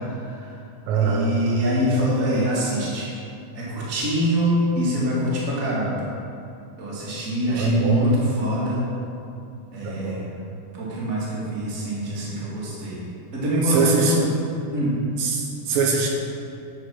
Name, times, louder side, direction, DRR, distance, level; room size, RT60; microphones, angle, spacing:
voice 1, 0.1-0.5 0.9-3.1 3.5-6.0 6.8-8.8 9.7-10.2 10.7-13.0 13.3-14.3 14.7-15.0, equal, 30° right, -7 dB, 1.9 m, -24 dB
voice 2, 0.9-1.3 7.5-8.1 9.8-10.3 13.7-14.2 15.2-16.1, right 4 dB, 80° right, 0 dB, 2.4 m, -23 dB
9.4 x 5.0 x 5.9 m, 2.6 s
omnidirectional pair, 4.2 m